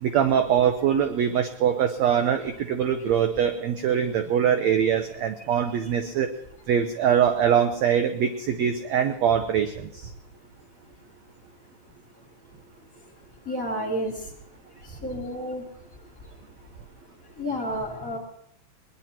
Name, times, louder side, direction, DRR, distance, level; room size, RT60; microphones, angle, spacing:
voice 1, 0.0-6.3 6.7-10.1, right 8 dB, 75° right, 7 dB, 1.7 m, -23 dB
voice 2, 13.5-14.1 15.0-15.6 17.4-18.2, equal, 25° left, 1 dB, 2.7 m, -30 dB
21.5 x 21.0 x 2.9 m, 0.70 s
omnidirectional pair, 4.1 m